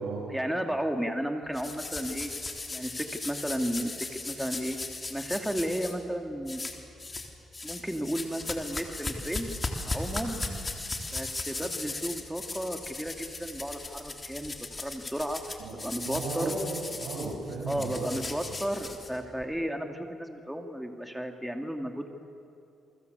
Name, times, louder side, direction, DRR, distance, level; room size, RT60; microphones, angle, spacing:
voice 1, 0.3-2.3 2.7-4.8 5.1-6.7 7.6-9.5 9.8-10.4 11.1-16.5 17.7-22.1, equal, 5° right, 4 dB, 2.5 m, -33 dB
sound 1, 1.5-5.9 6.5-7.3 7.5-19.4, left 3 dB, 25° left, 3.6 m, -37 dB
voice 2, 16.1-18.1 18.5-18.6, right 3 dB, 85° right, -2 dB, 7.3 m, -35 dB
29.0 x 23.5 x 8.2 m, 2.7 s
cardioid pair, 90°, 0 cm